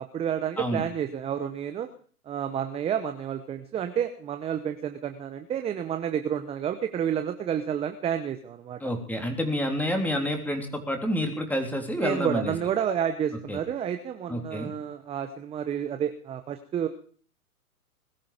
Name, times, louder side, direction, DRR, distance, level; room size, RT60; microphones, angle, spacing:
voice 1, 0.0-1.9 2.3-8.8 12.0-16.9, right 9 dB, 15° right, 8 dB, 0.9 m, -30 dB
voice 2, 8.8-12.5 13.5-13.6 14.3-14.7, equal, 5° left, 4 dB, 3.4 m, -28 dB
21.0 x 13.0 x 5.1 m, 0.43 s
hypercardioid pair, 120°, 45 cm